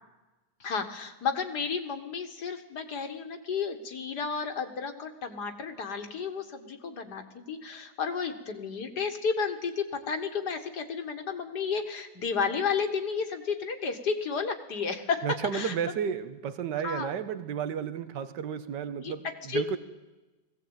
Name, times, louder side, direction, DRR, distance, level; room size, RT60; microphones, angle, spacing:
voice 1, 0.6-15.3 15.5-15.7 16.8-17.1 18.9-19.1 19.5-19.6, left 5 dB, 70° left, 2.3 m, -32 dB
voice 2, 15.2-19.8, right 7 dB, 85° right, 1.7 m, -32 dB
20.0 x 16.5 x 9.0 m
omnidirectional pair, 1.8 m